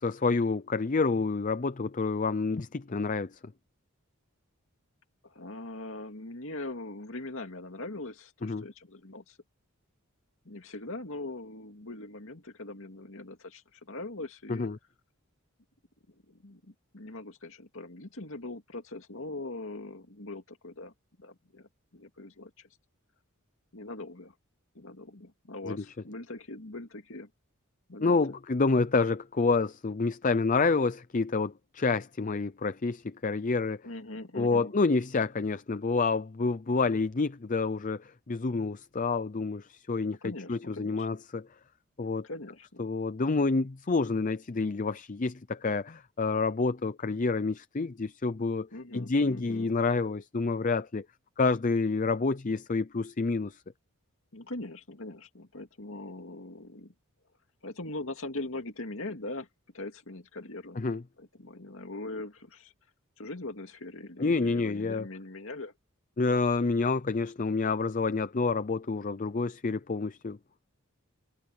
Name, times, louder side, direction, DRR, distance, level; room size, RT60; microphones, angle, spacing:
voice 1, 0.0-3.4 8.4-8.6 14.5-14.8 25.6-25.8 28.0-33.8 34.3-41.5 42.0-42.3 42.8-48.7 48.9-51.1 51.4-53.6 60.8-61.0 64.2-65.1 66.2-70.4, left 3 dB, 35° left, 0.5 m, -28 dB
voice 2, 5.2-9.4 10.4-14.7 16.3-20.9 21.2-22.7 23.7-24.3 24.7-27.3 27.9-28.2 33.8-34.7 40.2-41.1 42.2-42.9 48.7-49.7 54.3-56.9 57.6-59.5 59.7-60.8 61.2-62.7 63.2-65.7, left 2 dB, 65° left, 2.5 m, -41 dB
head